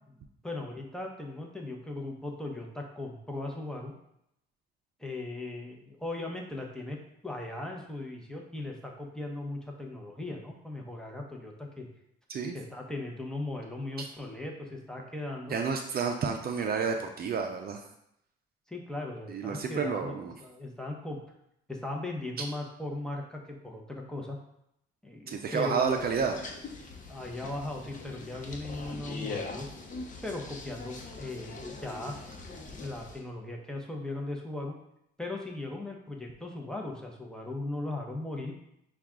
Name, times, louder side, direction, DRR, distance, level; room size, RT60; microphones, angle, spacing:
voice 1, 0.4-3.9 5.0-11.9 12.5-15.6 18.7-20.1 20.4-21.2 21.7-24.4 25.0-26.1 27.1-29.7 30.2-34.7 35.2-38.5, left 2 dB, 5° left, 0 dB, 0.9 m, -38 dB
voice 2, 15.5-17.8 19.3-20.4 25.3-26.4, right 5 dB, 50° right, 4 dB, 0.5 m, -30 dB
sound 1, 25.8-33.2, left 3 dB, 40° left, 0.9 m, -42 dB
5.8 x 2.4 x 3.7 m, 0.78 s
cardioid pair, 90°, 20 cm